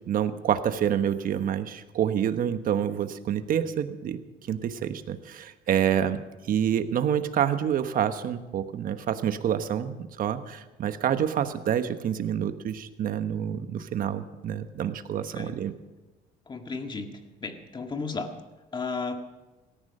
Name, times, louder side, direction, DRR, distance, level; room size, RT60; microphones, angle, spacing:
voice 1, 0.1-4.2 4.5-15.7, right 9 dB, 55° right, 10 dB, 1.2 m, -27 dB
voice 2, 15.2-15.6 16.5-17.1 17.4-18.3 18.7-19.2, left 4 dB, 25° left, 5 dB, 1.9 m, -33 dB
17.5 x 13.5 x 5.5 m, 1.1 s
cardioid pair, 110°, 17 cm